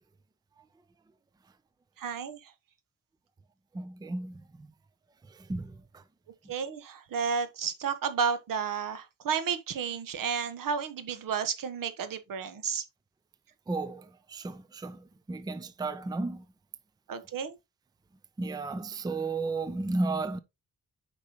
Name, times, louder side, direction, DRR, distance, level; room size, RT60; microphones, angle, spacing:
voice 1, 2.0-2.5 6.5-12.8 17.1-17.5, right 6 dB, 75° right, 1.3 m, -32 dB
voice 2, 3.8-4.3 5.5-5.7 13.7-14.0 14.3-15.0 15.3-16.4 18.4-20.4, right 3 dB, 10° right, 0.5 m, -33 dB
8.6 x 5.3 x 2.9 m
wide cardioid pair, 145°, 33 cm